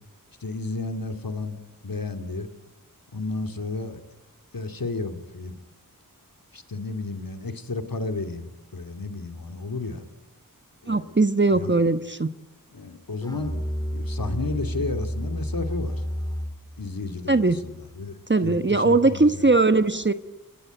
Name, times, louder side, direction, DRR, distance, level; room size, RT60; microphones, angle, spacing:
voice 1, 0.4-2.5 3.1-4.0 4.5-5.6 6.5-10.0 10.8-11.1 11.5-11.7 12.7-16.0 16.8-18.2 18.4-19.5, left 3 dB, 80° left, 7 dB, 2.5 m, -32 dB
voice 2, 10.9-12.3 17.3-17.6 18.3-20.1, right 3 dB, 30° right, 10 dB, 1.2 m, -20 dB
Musical instrument, 13.2-16.7, equal, 10° left, 4.0 m, -30 dB
29.5 x 21.5 x 9.1 m, 0.94 s
wide cardioid pair, 45°, 34 cm